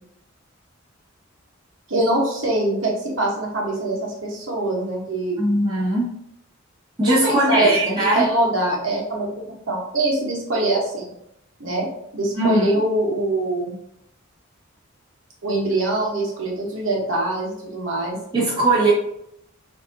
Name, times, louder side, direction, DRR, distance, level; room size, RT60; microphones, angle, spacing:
voice 1, 1.9-5.4 7.2-11.1 11.6-11.9 12.1-13.7 15.4-18.2, right 1 dB, 70° right, -3 dB, 1.2 m, -23 dB
voice 2, 5.4-6.1 7.0-8.3 12.4-12.7 18.3-18.9, right 2 dB, 20° right, -8 dB, 1.7 m, -19 dB
6.9 x 2.8 x 2.7 m, 0.76 s
head